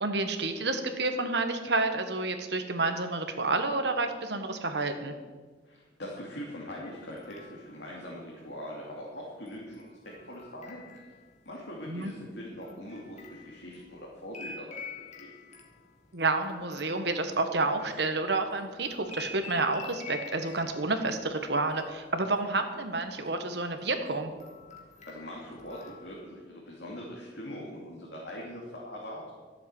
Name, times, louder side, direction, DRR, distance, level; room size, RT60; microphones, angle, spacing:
voice 1, 0.0-5.1 11.9-12.1 16.1-24.3, right 3 dB, 65° right, 6 dB, 1.5 m, -29 dB
voice 2, 5.6-11.0 11.4-14.9 15.2-15.3 25.0-29.3, equal, 65° left, -4 dB, 2.9 m, -42 dB
sound 1, 6.8-7.8 9.5-11.5 12.0-18.2 18.6-21.4 21.7-22.6 22.9-23.3 23.8-26.2, left 4 dB, 40° left, 2.1 m, -48 dB
13.5 x 7.9 x 8.6 m, 1.4 s
head